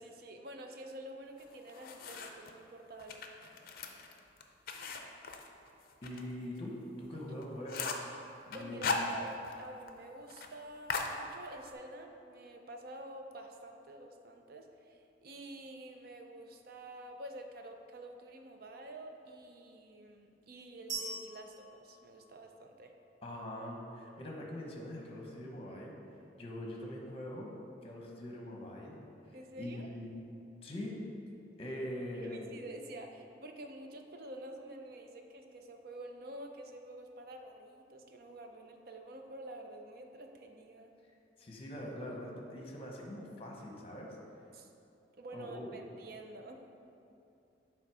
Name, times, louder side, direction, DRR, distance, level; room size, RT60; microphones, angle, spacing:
voice 1, 0.0-3.3 8.5-22.9 29.3-29.9 32.2-40.9 44.5-44.7 45.2-46.6, right 1 dB, 55° right, 4 dB, 0.5 m, -49 dB
sound 1, 1.4-2.5 3.0-6.2 6.6-6.7 7.0-7.1 7.4-8.1 8.5-9.6 9.9-10.0 10.3-10.5 10.9-11.7, left 4 dB, 50° left, 0.5 m, -38 dB
voice 2, 6.0-8.0 8.5-9.0 23.2-25.9 26.4-27.6 27.8-29.0 29.6-30.1 30.6-31.0 31.6-32.4 41.4-44.2 45.3-45.8, left 1 dB, 30° left, -1 dB, 0.9 m, -43 dB
sound 2, 20.9-22.8, right 3 dB, 85° right, 1.6 m, -43 dB
7.3 x 3.6 x 4.8 m, 2.7 s
head